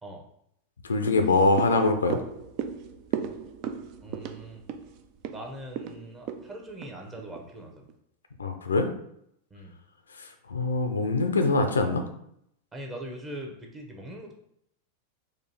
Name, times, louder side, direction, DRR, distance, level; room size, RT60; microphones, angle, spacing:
voice 1, 0.8-2.2 8.4-8.9 10.5-12.0, left 3 dB, 70° left, 6 dB, 0.5 m, -23 dB
sound 1, 1.0-7.5 7.9-8.0, right 8 dB, 40° right, 0.4 m, -36 dB
voice 2, 4.0-4.6 5.3-7.9 9.5-9.7 12.7-14.3, right 1 dB, 15° right, 1 dB, 0.9 m, -41 dB
4.3 x 2.7 x 4.0 m, 0.73 s
figure-of-eight pair, 90°, 0 cm